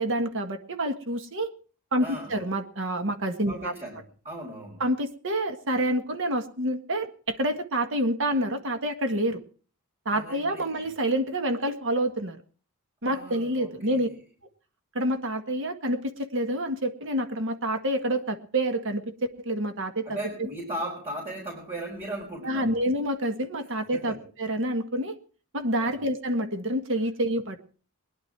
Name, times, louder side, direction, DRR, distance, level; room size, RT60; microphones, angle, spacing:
voice 1, 0.0-1.5 1.9-3.7 4.8-9.4 10.1-12.4 13.0-14.1 15.0-19.0 19.5-20.1 22.4-25.2 25.5-27.6, right 1 dB, 60° right, 7 dB, 1.7 m, -28 dB
voice 2, 2.0-2.3 3.5-4.8 10.1-10.9 13.0-14.2 20.0-22.7 23.9-24.3 25.8-26.0, right 1 dB, 30° right, -3 dB, 4.5 m, -37 dB
21.0 x 11.0 x 4.7 m, 0.41 s
head